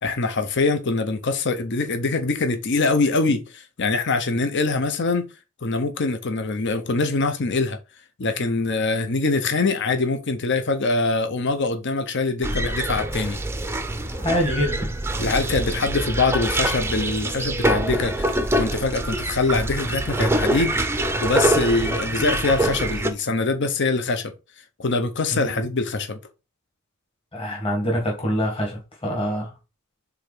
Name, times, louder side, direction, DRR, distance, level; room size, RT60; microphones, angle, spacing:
voice 1, 0.0-5.2 5.6-7.8 8.2-13.4 15.2-20.8 21.2-24.3 24.8-26.2, left 3 dB, 55° left, 0.7 m, -23 dB
sound 1, 12.4-23.1, right 1 dB, 10° right, 0.5 m, -25 dB
voice 2, 14.1-14.9 25.3-25.5 27.3-29.5, equal, 25° left, 1.7 m, -25 dB
5.0 x 3.8 x 4.9 m
head